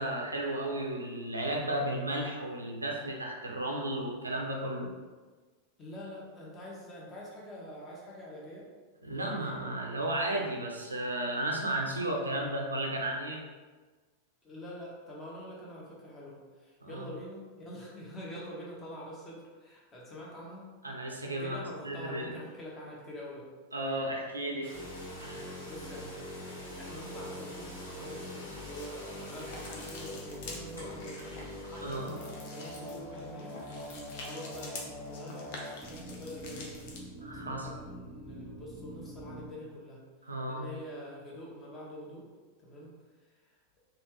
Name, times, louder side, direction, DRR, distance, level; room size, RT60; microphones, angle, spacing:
voice 1, 0.0-4.9 9.0-13.4 16.8-17.1 20.8-21.6 21.8-22.3 23.7-24.7 25.2-25.4 31.8-32.1 37.2-37.7 40.3-40.6, right 1 dB, 80° right, 0 dB, 0.4 m, -34 dB
voice 2, 5.8-8.7 14.4-20.7 21.4-23.5 25.6-26.2 26.6-28.4 28.7-33.9 34.2-40.0 40.5-42.3 42.6-43.0 43.2-43.3, equal, 20° left, -4 dB, 0.9 m, -45 dB
sound 1, 24.6-35.3, equal, 80° left, 1.1 m, -49 dB
sound 2, 24.7-39.5, left 1 dB, 5° left, 0.4 m, -44 dB
sound 3, 28.7-37.0, left 2 dB, 50° left, 0.6 m, -47 dB
3.2 x 2.3 x 3.0 m, 1.4 s
figure-of-eight pair, 90°, 0 cm